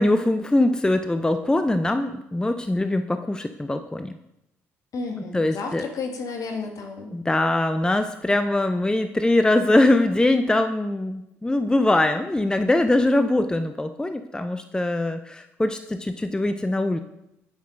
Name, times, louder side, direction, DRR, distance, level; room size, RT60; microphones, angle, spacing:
voice 1, 0.0-4.2 5.3-5.8 7.1-17.0, left 1 dB, 10° left, 9 dB, 0.5 m, -22 dB
voice 2, 4.9-7.1, left 4 dB, 55° left, 3 dB, 1.6 m, -32 dB
9.7 x 5.5 x 3.7 m, 0.85 s
hypercardioid pair, 55°, 7 cm